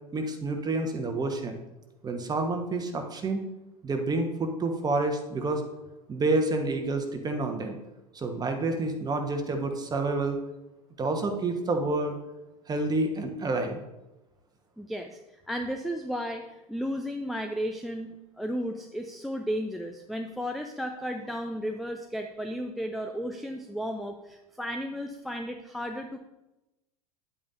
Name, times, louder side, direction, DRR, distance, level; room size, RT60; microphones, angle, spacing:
voice 1, 0.1-1.6 2.0-3.4 3.8-5.6 6.1-7.8 8.1-10.4 11.0-12.2 12.7-13.8, right 2 dB, 20° right, 4 dB, 1.2 m, -28 dB
voice 2, 14.8-15.2 15.5-26.2, equal, ahead, 5 dB, 0.4 m, -34 dB
9.7 x 8.6 x 2.6 m, 0.97 s
figure-of-eight pair, 80°, 20 cm